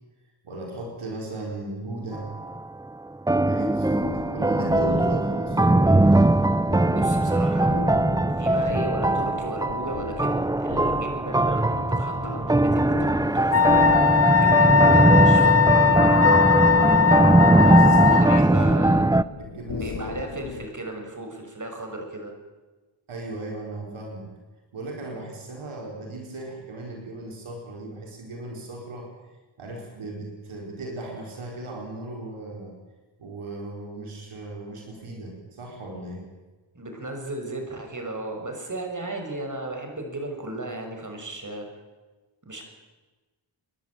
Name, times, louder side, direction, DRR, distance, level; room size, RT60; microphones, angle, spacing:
voice 1, 0.4-2.3 3.2-5.6 16.9-18.3 18.5-19.1 19.4-20.3 23.1-24.3 24.7-29.1 29.6-32.7 33.2-36.3, right 2 dB, 85° right, 0 dB, 4.7 m, -36 dB
sound 1, 2.1-2.6 3.3-19.2, right 2 dB, 10° right, 0.6 m, -20 dB
sound 2, 4.0-20.7, left 4 dB, 55° left, 2.3 m, -37 dB
voice 2, 6.9-7.8 8.4-13.7 14.2-15.7 18.1-19.1 19.8-22.3 36.7-41.7 42.5-42.6, right 2 dB, 40° right, 3 dB, 6.6 m, -35 dB
Wind instrument woodwind instrument, 13.5-18.4, left 7 dB, 30° left, 0.8 m, -19 dB
29.0 x 11.5 x 9.0 m, 1.2 s
cardioid pair, 45°, 48 cm